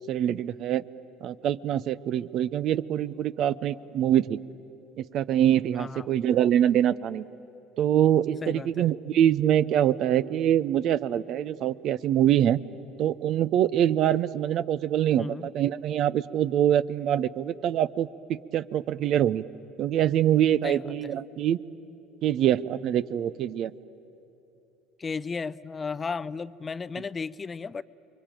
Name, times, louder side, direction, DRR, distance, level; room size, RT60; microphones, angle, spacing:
voice 1, 0.1-0.8 1.2-4.4 5.0-7.2 7.8-12.6 13.0-19.4 19.8-21.6 22.2-23.7, right 10 dB, 55° right, 17 dB, 0.6 m, -24 dB
voice 2, 5.7-6.1 8.4-8.9 15.2-15.5 20.6-21.1 25.0-27.8, left 5 dB, 30° left, 17 dB, 0.5 m, -34 dB
28.0 x 22.5 x 9.0 m, 2.9 s
hypercardioid pair, 75°, 0 cm